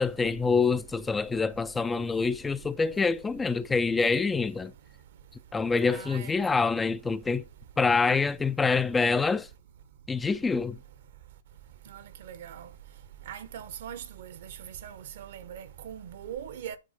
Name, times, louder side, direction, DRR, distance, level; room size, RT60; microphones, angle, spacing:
voice 1, 0.0-4.7 5.5-7.4 7.8-9.5 10.1-10.8, left 4 dB, 10° left, 0.4 m, -26 dB
voice 2, 5.8-6.3 11.9-12.7 13.3-16.8, right 9 dB, 55° right, 1.0 m, -41 dB
9.9 x 3.9 x 4.9 m
figure-of-eight pair, 110°, 0 cm